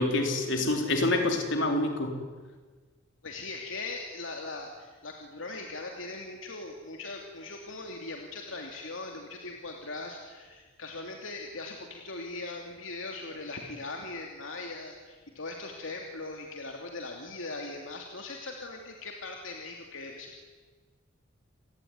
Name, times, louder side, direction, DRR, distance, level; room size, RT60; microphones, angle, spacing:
voice 1, 0.0-2.2, left 2 dB, 65° left, 3 dB, 4.5 m, -27 dB
voice 2, 3.2-20.4, left 3 dB, 80° left, 2 dB, 2.9 m, -40 dB
28.5 x 19.0 x 9.7 m, 1.4 s
head